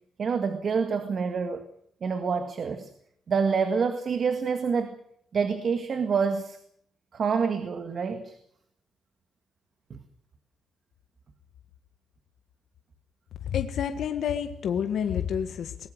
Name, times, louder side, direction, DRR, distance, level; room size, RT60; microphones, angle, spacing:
voice 1, 0.2-1.6 2.0-2.9 3.3-5.0 5.3-6.6 7.1-8.4 9.9-10.0, right 5 dB, 45° right, 8 dB, 1.9 m, -27 dB
voice 2, 13.4-15.9, left 8 dB, 70° left, 7 dB, 1.6 m, -29 dB
22.5 x 20.5 x 6.5 m, 0.67 s
wide cardioid pair, 160°, 0 cm